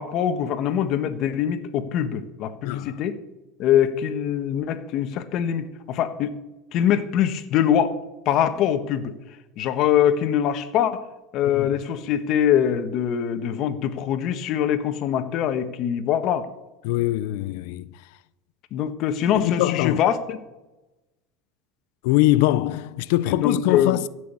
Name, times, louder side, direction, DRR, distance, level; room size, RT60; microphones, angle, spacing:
voice 1, 0.0-3.1 3.6-6.3 6.7-7.9 8.2-9.1 9.6-11.0 11.3-16.5 18.7-20.4 23.2-24.0, left 9 dB, 50° left, 1.4 m, -23 dB
voice 2, 2.6-3.0 11.5-11.7 16.8-17.9 19.4-20.0 22.0-24.0, left 16 dB, 75° left, 0.6 m, -22 dB
15.5 x 6.3 x 8.6 m
supercardioid pair, 120°, 0 cm